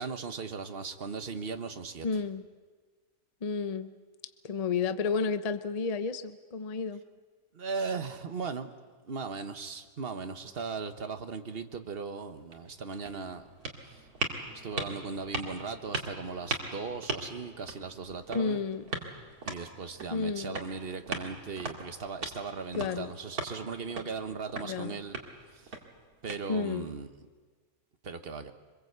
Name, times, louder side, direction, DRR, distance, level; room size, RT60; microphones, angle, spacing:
voice 1, 0.0-2.1 7.5-8.7 9.0-13.5 13.8-14.0 14.6-18.6 19.4-25.2 25.5-25.6 26.2-27.1 28.0-28.5, right 5 dB, 40° right, 8 dB, 1.3 m, -38 dB
voice 2, 2.0-2.4 3.4-4.0 4.4-7.0 18.3-18.9 20.1-20.6 22.8-23.1 24.6-24.9 26.5-26.9, left 5 dB, 35° left, 11 dB, 0.6 m, -31 dB
sound 1, 12.3-26.9, right 3 dB, 65° right, 2.7 m, -40 dB
25.5 x 22.0 x 8.0 m, 1.4 s
omnidirectional pair, 1.7 m